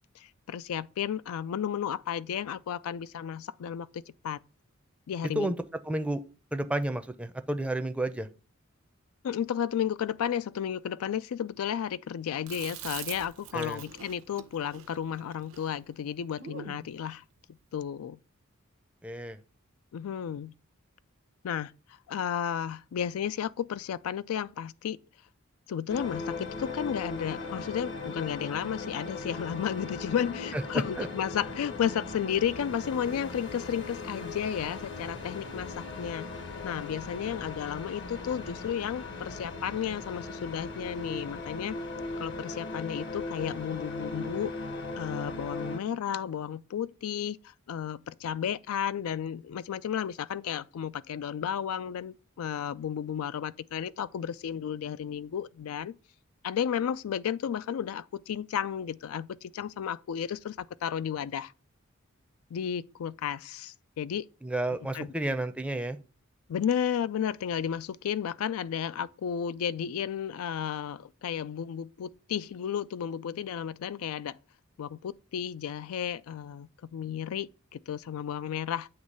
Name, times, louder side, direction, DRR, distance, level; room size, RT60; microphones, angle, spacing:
voice 1, 0.2-4.4 5.1-5.5 9.2-17.2 17.7-18.2 19.9-20.5 21.4-21.7 22.1-25.0 25.7-36.3 36.6-41.8 42.2-44.5 45.0-47.4 47.7-55.9 56.4-61.5 62.5-64.2 64.9-65.1 66.5-74.4 74.8-78.9, left 8 dB, 85° left, 0.3 m, -33 dB
voice 2, 5.8-6.2 6.5-8.3 13.5-13.8 19.0-19.4 30.5-30.6 31.0-31.1 64.4-66.0, right 1 dB, 5° right, 0.5 m, -31 dB
Chewing mastication, 12.5-16.9, right 9 dB, 70° right, 0.7 m, -44 dB
sound 1, 25.9-45.8, left 3 dB, 60° left, 0.9 m, -38 dB
8.0 x 3.1 x 5.2 m
head